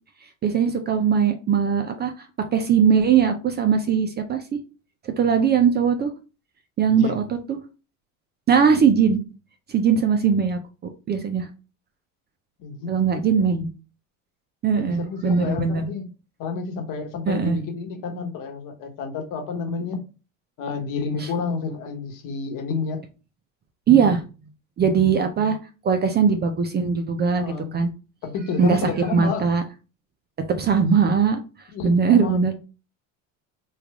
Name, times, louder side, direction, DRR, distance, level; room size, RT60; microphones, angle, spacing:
voice 1, 0.4-2.3 2.5-4.6 5.0-6.1 6.8-7.6 8.5-9.2 9.7-11.5 12.9-13.7 14.6-15.8 17.3-17.6 21.2-21.3 23.9-24.2 24.8-25.6 25.8-27.5 27.7-27.9 28.6-28.8 29.1-29.6 30.6-31.4 31.8-32.5, right 6 dB, 25° right, 0.4 m, -20 dB
voice 2, 6.9-7.3 12.6-12.9 13.2-13.4 14.8-16.1 16.4-20.0 20.6-23.0 27.4-27.7 28.2-29.5 31.7-32.5, left 4 dB, 55° left, 1.1 m, -30 dB
3.2 x 2.4 x 3.5 m
supercardioid pair, 100°, 39 cm